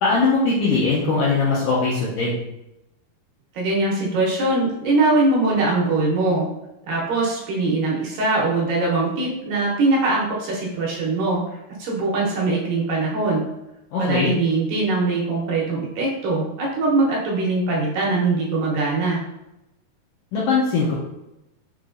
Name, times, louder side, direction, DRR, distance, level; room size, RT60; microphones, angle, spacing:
voice 1, 0.0-2.4 13.9-14.3 20.3-20.9, left 4 dB, 80° left, -6 dB, 1.8 m, -20 dB
voice 2, 3.5-6.5 6.8-11.4 11.8-13.4 14.0-19.2, right 2 dB, 75° right, -4 dB, 2.3 m, -22 dB
6.5 x 2.9 x 2.5 m, 0.90 s
omnidirectional pair, 4.4 m